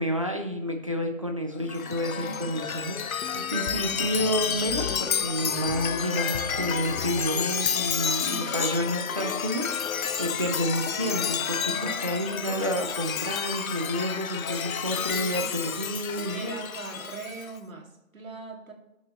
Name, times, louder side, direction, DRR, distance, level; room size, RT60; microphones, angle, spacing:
voice 1, 0.0-16.5, equal, 25° right, 4 dB, 0.5 m, -30 dB
Chime, 1.6-17.5, left 7 dB, 75° left, 0.8 m, -30 dB
voice 2, 2.1-2.6 8.2-8.8 10.9-11.0 11.7-12.7 15.0-15.5 16.3-18.7, right 3 dB, 70° right, 1 dB, 2.3 m, -41 dB
10.5 x 6.7 x 3.0 m, 0.92 s
hypercardioid pair, 170°, 41 cm